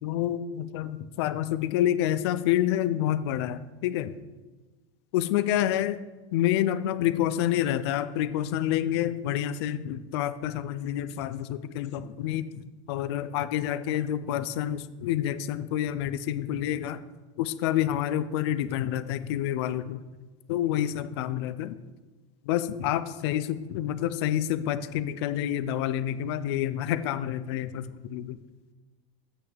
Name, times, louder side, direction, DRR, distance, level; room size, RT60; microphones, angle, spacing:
voice 1, 0.0-4.1 5.1-6.0 6.3-12.6 12.9-17.0 17.4-20.0 20.5-21.8 22.4-28.4, left 11 dB, 55° left, 13 dB, 0.5 m, -28 dB
15.0 x 5.8 x 3.5 m, 1.2 s
supercardioid pair, 180°, 16 cm